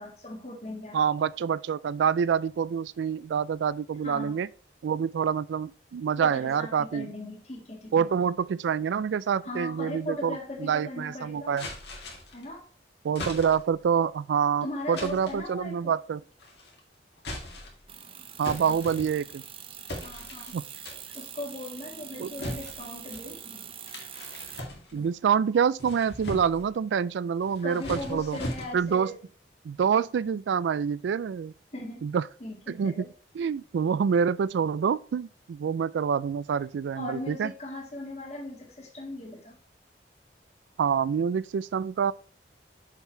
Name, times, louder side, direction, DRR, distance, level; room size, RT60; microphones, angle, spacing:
voice 1, 0.0-1.0 4.0-4.4 6.2-8.0 9.4-11.6 12.3-12.7 14.6-15.9 18.5-18.8 20.0-20.6 21.1-23.7 24.9-25.1 27.6-29.2 31.7-32.1 32.4-33.1 36.9-39.6, left 2 dB, 35° left, 1.6 m, -39 dB
voice 2, 0.9-4.5 4.8-7.1 7.9-11.7 13.0-16.2 18.4-19.4 20.5-20.6 22.2-22.3 24.9-28.4 28.7-29.1 29.6-31.5 32.0-32.2 32.7-33.1 33.3-37.5 40.8-42.1, right 7 dB, 85° right, 0.3 m, -27 dB
sound 1, 11.6-12.4 13.2-13.8 14.9-15.4 16.4-16.8 17.2-17.9 18.4-19.4 19.9-20.5 20.9-21.3 22.4-23.3 23.9-25.1 25.6-26.7 27.4-29.0, left 1 dB, 70° left, 2.1 m, -39 dB
sound 2, 17.9-24.6, right 9 dB, 30° right, 0.5 m, -44 dB
6.9 x 4.6 x 4.4 m
head